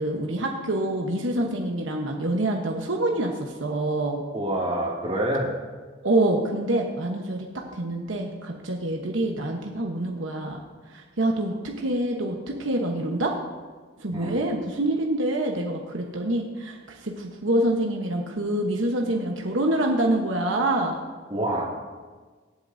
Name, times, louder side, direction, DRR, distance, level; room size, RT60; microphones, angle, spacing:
voice 1, 0.0-4.2 6.0-10.6 10.9-13.4 14.0-21.0, right 1 dB, 75° right, 1 dB, 1.1 m, -26 dB
voice 2, 4.3-5.5 14.1-14.4 21.3-21.6, right 1 dB, 30° right, -3 dB, 2.3 m, -26 dB
25.0 x 8.4 x 2.7 m, 1.4 s
head